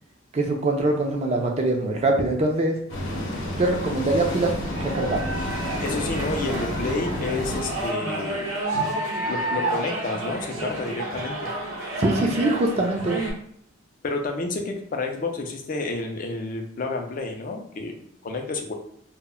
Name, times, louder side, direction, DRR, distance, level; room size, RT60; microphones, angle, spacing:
voice 1, 0.3-2.7 3.6-4.5 4.8-5.2 12.0-13.2, right 2 dB, 30° right, 2 dB, 0.4 m, -23 dB
sound 1, 2.9-7.9, left 1 dB, 65° left, 0.7 m, -30 dB
sound 2, 4.2-13.3, right 2 dB, 65° right, 0.7 m, -30 dB
voice 2, 5.8-8.5 9.3-11.5 14.0-18.7, left 3 dB, 40° left, 3 dB, 0.4 m, -30 dB
2.1 x 2.0 x 3.5 m, 0.66 s
head